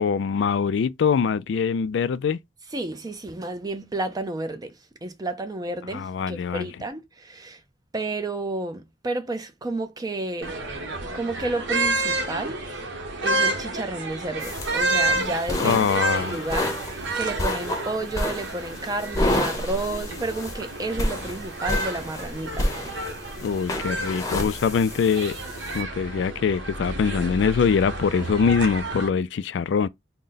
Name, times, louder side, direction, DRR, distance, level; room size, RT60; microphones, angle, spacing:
voice 1, 0.0-2.4 5.9-6.7 15.6-16.5 23.4-25.4 25.7-29.9, left 6 dB, 70° left, 0.3 m, -23 dB
voice 2, 2.7-4.7 5.0-7.6 7.9-10.6 11.1-12.6 13.2-22.7, right 2 dB, 20° right, 0.5 m, -31 dB
sound 1, 10.4-29.1, right 2 dB, 75° right, 1.0 m, -30 dB
sound 2, 14.4-25.8, left 1 dB, 20° left, 0.7 m, -30 dB
3.8 x 2.1 x 3.9 m
head